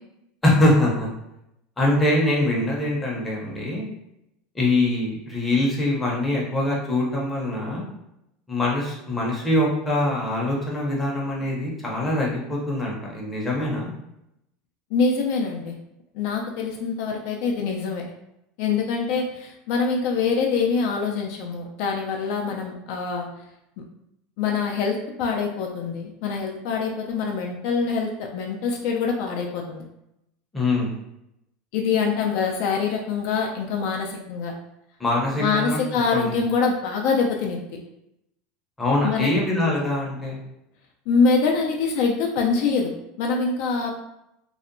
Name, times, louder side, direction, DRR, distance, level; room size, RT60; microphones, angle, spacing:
voice 1, 0.4-1.1 1.8-3.9 4.5-7.8 8.5-13.9 30.5-30.9 35.0-35.8 36.1-36.4 38.8-40.4, left 1 dB, 10° left, -4 dB, 0.6 m, -23 dB
voice 2, 14.9-15.8 16.1-18.0 18.6-23.3 24.4-29.8 31.7-34.5 35.4-37.6 39.0-39.3 41.1-42.9 43.2-43.9, left 5 dB, 60° left, 1 dB, 0.3 m, -24 dB
2.7 x 2.1 x 2.5 m, 0.84 s
supercardioid pair, 160°, 0 cm